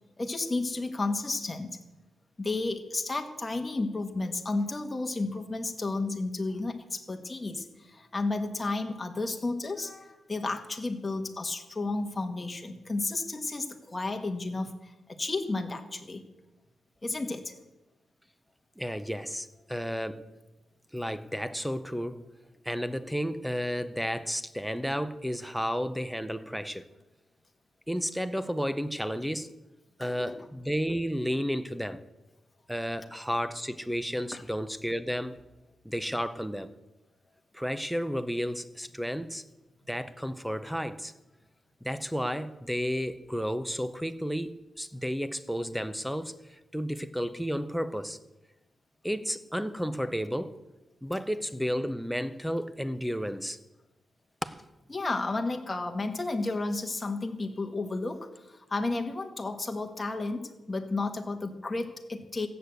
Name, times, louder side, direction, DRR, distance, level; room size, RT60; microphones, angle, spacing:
voice 1, 0.2-1.8 2.4-16.2 17.0-17.5 30.0-30.4 34.3-34.4 54.9-62.5, left 3 dB, 15° left, 1.3 m, -32 dB
voice 2, 18.8-20.2 20.9-22.2 22.6-26.9 27.9-29.5 30.0-32.0 32.7-35.4 35.8-36.7 37.5-39.4 39.9-41.1 41.8-46.3 46.7-48.2 49.0-50.6 51.0-53.6 54.4-54.6, equal, ahead, 0.6 m, -32 dB
16.0 x 8.2 x 8.0 m
wide cardioid pair, 180°, 0 cm